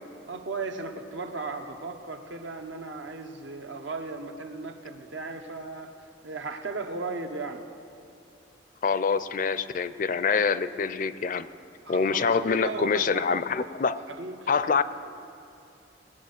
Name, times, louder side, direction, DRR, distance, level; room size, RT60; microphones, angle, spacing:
voice 1, 0.3-5.9 6.2-7.6 11.8-13.3 14.1-14.5, right 3 dB, 85° right, 5 dB, 1.2 m, -36 dB
voice 2, 8.8-11.5 11.9-14.0 14.5-14.8, left 5 dB, 45° left, 14 dB, 0.4 m, -25 dB
19.5 x 8.7 x 6.5 m, 2.6 s
head